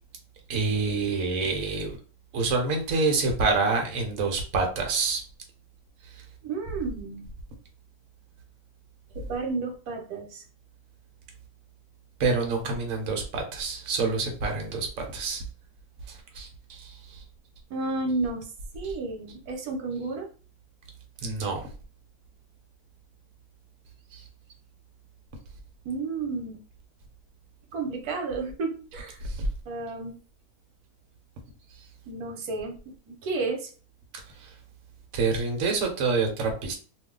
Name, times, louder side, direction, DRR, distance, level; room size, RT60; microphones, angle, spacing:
voice 1, 0.5-2.0 2.3-5.2 6.1-6.2 12.2-15.4 16.1-17.2 18.8-18.9 21.2-21.7 24.1-24.3 29.2-29.5 34.4-34.5 35.1-36.7, right 4 dB, 65° right, 2 dB, 1.2 m, -27 dB
voice 2, 6.4-7.3 9.1-10.4 17.7-18.4 18.7-20.3 25.8-26.6 27.7-29.2 29.7-30.2 32.1-33.7, right 3 dB, 85° right, 2 dB, 1.2 m, -32 dB
2.7 x 2.4 x 3.6 m, 0.38 s
omnidirectional pair, 1.6 m